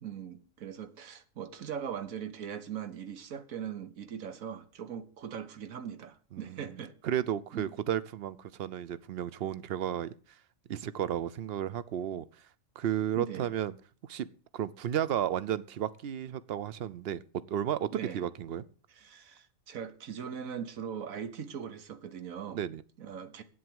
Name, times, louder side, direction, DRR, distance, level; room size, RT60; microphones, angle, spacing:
voice 1, 0.0-6.9 7.5-7.7 13.1-13.5 17.9-18.3 19.0-22.6 23.0-23.4, right 8 dB, 90° right, 1.5 m, -40 dB
voice 2, 6.3-6.8 7.0-10.1 10.7-12.3 12.8-13.8 14.1-14.3 14.5-17.2 17.5-18.6 22.5-22.8, right 10 dB, 55° right, 0.8 m, -33 dB
8.6 x 7.7 x 7.8 m
omnidirectional pair, 1.4 m